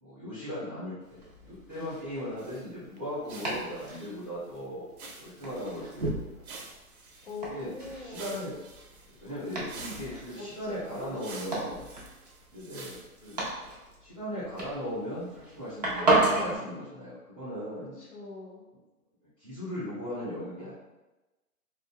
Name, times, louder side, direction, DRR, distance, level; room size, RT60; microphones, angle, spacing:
voice 1, 0.0-4.9 5.2-6.2 7.5-7.7 8.0-8.6 9.2-11.9 12.5-13.3 14.0-17.9 19.4-20.7, equal, 5° right, -13 dB, 0.8 m, -38 dB
Domestic sounds home sounds, 1.0-16.5, right 2 dB, 30° right, 0.4 m, -34 dB
sound 1, 2.4-2.7 3.0-3.1 3.3-4.6 5.0-6.1 6.4-13.5, right 3 dB, 70° right, 0.7 m, -48 dB
voice 2, 7.2-8.5 10.4-11.3 18.0-18.7 20.6-20.7, left 3 dB, 50° left, -3 dB, 0.6 m, -43 dB
2.2 x 2.0 x 3.5 m, 1.1 s
hypercardioid pair, 150°, 45 cm